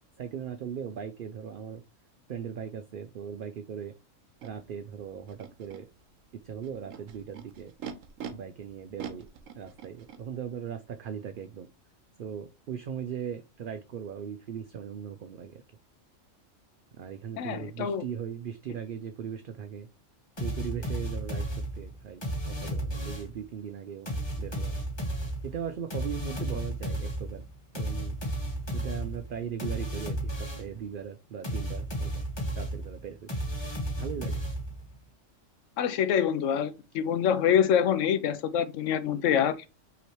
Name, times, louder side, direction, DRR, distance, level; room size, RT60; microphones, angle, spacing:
voice 1, 0.2-1.8 2.3-3.9 4.4-5.9 6.4-7.7 8.3-9.3 9.6-11.7 12.2-15.6 17.0-19.9 20.4-21.5 21.7-24.1 24.4-24.8 25.4-27.4 27.7-28.2 28.7-32.3 32.6-33.3 34.0-34.4, right 8 dB, 65° right, 0.5 m, -38 dB
Animal, 4.4-4.5 5.3-5.8 6.6-8.3 9.0-10.2, right 8 dB, 85° right, 1.1 m, -42 dB
voice 2, 17.4-18.0 35.8-39.6, left 8 dB, 75° left, 0.9 m, -25 dB
sound 1, 20.4-23.4 24.1-30.8 31.4-34.9, right 1 dB, 20° left, 1.3 m, -33 dB
5.7 x 3.1 x 3.0 m
omnidirectional pair, 1.3 m